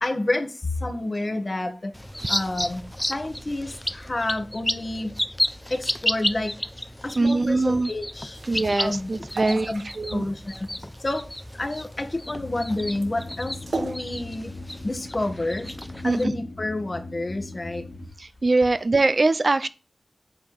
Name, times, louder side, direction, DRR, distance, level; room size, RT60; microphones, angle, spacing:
voice 1, 0.0-1.9 2.3-2.8 3.1-5.1 5.7-6.6 7.0-8.4 8.8-9.1 9.5-9.8 10.1-11.3 11.6-14.5 14.8-15.7 16.0-17.9, left 2 dB, 45° left, 6 dB, 1.7 m, -29 dB
sound 1, 1.9-16.2, left 1 dB, 10° left, 0.7 m, -32 dB
voice 2, 7.2-7.9 8.5-10.3 16.0-16.4 18.2-19.7, right 3 dB, 55° right, 13 dB, 0.7 m, -23 dB
sound 2, 8.3-14.0, right 3 dB, 85° right, 1.3 m, -37 dB
sound 3, 12.2-18.1, left 2 dB, 65° left, 2.7 m, -40 dB
8.8 x 4.5 x 7.3 m, 0.33 s
wide cardioid pair, 70°, 0 cm